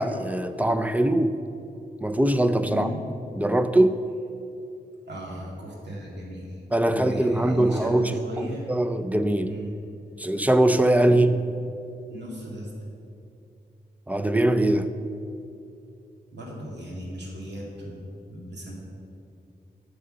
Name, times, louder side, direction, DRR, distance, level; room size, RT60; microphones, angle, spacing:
voice 1, 0.0-1.4 2.0-2.9 3.4-4.0 6.7-8.1 8.7-9.5 10.2-11.4 14.1-14.9, right 1 dB, 10° right, 0.5 m, -21 dB
voice 2, 2.6-3.0 5.1-8.8 9.4-9.8 11.0-11.3 12.1-12.7 16.3-18.7, equal, 90° right, 2.2 m, -37 dB
8.0 x 6.7 x 6.5 m
wide cardioid pair, 85°, 17 cm